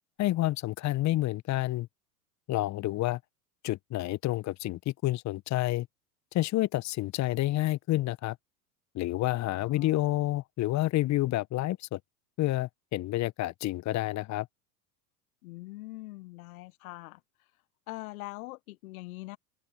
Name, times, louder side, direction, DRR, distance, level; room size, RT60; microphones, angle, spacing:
voice 1, 0.2-1.9 2.5-3.2 3.6-5.9 6.3-8.4 8.9-12.0 12.4-14.5, left 16 dB, 35° left, 1.3 m, -29 dB
voice 2, 9.4-10.0 15.4-17.2 17.9-19.4, left 20 dB, 55° left, 1.6 m, -43 dB
open air
figure-of-eight pair, 85°, 50 cm